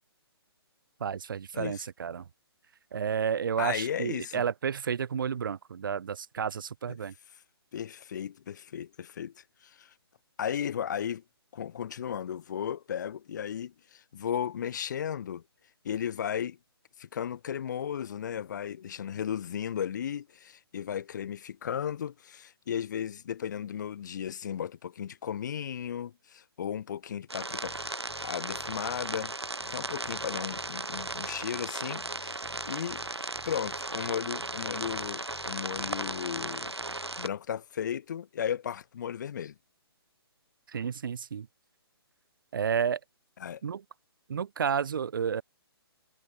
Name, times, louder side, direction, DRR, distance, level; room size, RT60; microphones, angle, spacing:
voice 1, 1.0-2.3 2.9-7.1 40.7-41.5 42.5-43.0 43.6-43.8 44.3-45.4, right 7 dB, 55° right, 0.5 m, -31 dB
voice 2, 1.5-1.9 3.6-4.4 7.7-9.9 10.4-11.2 11.5-15.4 15.8-16.6 17.0-27.7 28.2-29.3 29.7-32.3 32.7-33.0 33.5-36.7 37.2-39.5 43.4-43.6, left 9 dB, 45° left, 0.9 m, -35 dB
sound 1, 27.3-37.3, right 2 dB, 80° right, 2.5 m, -36 dB
sound 2, 27.6-37.2, left 40 dB or more, 25° left, 5.0 m, -56 dB
figure-of-eight pair, 135°, 13 cm